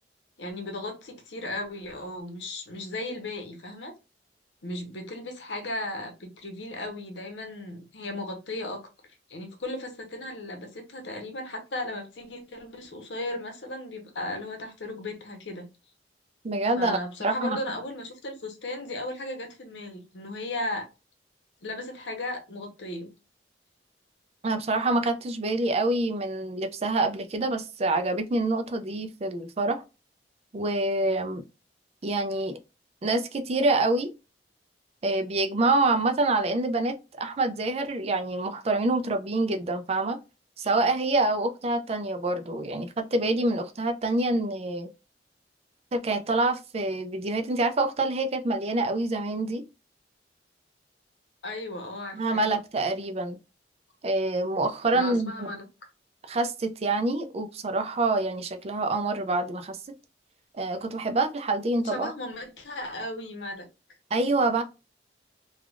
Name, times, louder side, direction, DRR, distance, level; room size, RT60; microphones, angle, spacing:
voice 1, 0.4-3.9 4.6-8.8 9.3-15.7 16.7-20.9 21.6-23.1 51.4-52.5 54.9-55.7 61.8-63.7, left 1 dB, 80° left, 0.9 m, -36 dB
voice 2, 16.4-17.6 24.4-29.8 30.5-31.4 32.0-32.6 33.0-34.1 35.0-40.2 40.6-44.9 45.9-49.6 52.1-53.4 54.0-55.5 56.3-59.8 60.5-62.1 64.1-64.6, right 2 dB, 35° right, 0.4 m, -26 dB
3.3 x 2.3 x 2.4 m
head